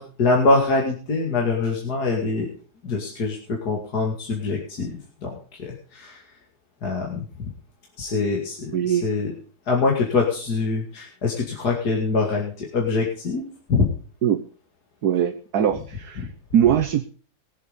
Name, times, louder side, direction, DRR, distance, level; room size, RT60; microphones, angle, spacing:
voice 1, 0.0-2.5 2.8-6.2 6.8-7.5 8.0-9.3 9.7-13.9 16.2-16.3, left 3 dB, 65° left, -1 dB, 2.9 m, -24 dB
voice 2, 8.7-9.1 14.2-14.4 15.0-16.3 16.5-17.0, right 9 dB, 65° right, 8 dB, 1.5 m, -21 dB
21.0 x 7.5 x 5.2 m, 0.41 s
omnidirectional pair, 1.8 m